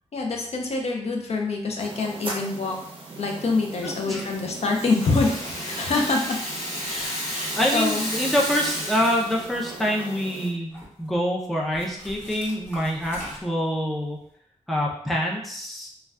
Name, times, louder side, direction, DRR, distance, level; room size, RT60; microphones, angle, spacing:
voice 1, 0.1-2.8 3.2-6.4 6.8-8.0, left 3 dB, 60° left, 1 dB, 0.5 m, -26 dB
sound 1, 1.8-10.5, right 3 dB, 45° right, 0.6 m, -39 dB
voice 2, 3.8-4.3 7.5-14.2 14.7-15.9, equal, ahead, -2 dB, 0.4 m, -26 dB
Rattle (instrument), 4.3-9.4, equal, 40° left, 1.1 m, -32 dB
sound 2, 8.1-8.2 8.7-10.1 10.5-11.1 11.7-13.7, equal, 15° left, 0.9 m, -43 dB
2.2 x 2.2 x 3.5 m, 0.66 s
wide cardioid pair, 160°, 12 cm